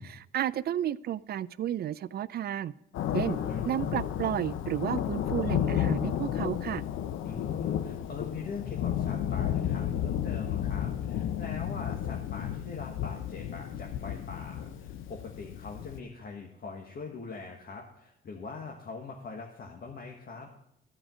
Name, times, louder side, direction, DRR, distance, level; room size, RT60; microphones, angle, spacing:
voice 1, 0.0-2.7 3.1-3.4 3.7-6.8, right 11 dB, 55° right, 19 dB, 0.4 m, -32 dB
Thunder, 2.9-16.0, left 10 dB, 85° left, 0.8 m, -32 dB
voice 2, 3.4-3.8 7.2-20.5, left 4 dB, 50° left, 0 dB, 1.5 m, -42 dB
14.0 x 5.0 x 6.1 m, 0.79 s
cardioid pair, 90°, 20 cm